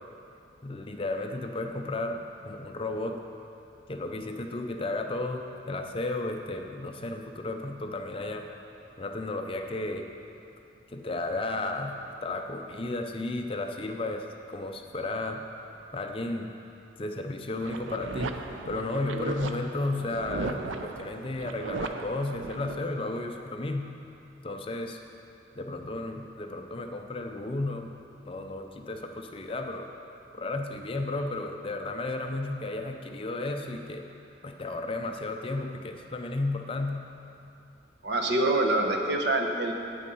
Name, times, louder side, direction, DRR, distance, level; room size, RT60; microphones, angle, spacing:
voice 1, 0.6-3.2 3.9-8.5 9.0-10.1 10.9-15.4 15.9-16.5 17.0-18.4 18.7-23.9 24.4-25.0 25.6-27.9 28.2-29.9 30.3-34.1 34.4-37.0, left 2 dB, 30° left, 4 dB, 0.5 m, -33 dB
sound 1, 17.6-22.8, right 3 dB, 85° right, 0.5 m, -37 dB
voice 2, 38.0-39.7, right 2 dB, 60° right, 2 dB, 0.9 m, -25 dB
8.7 x 8.4 x 5.4 m, 2.7 s
head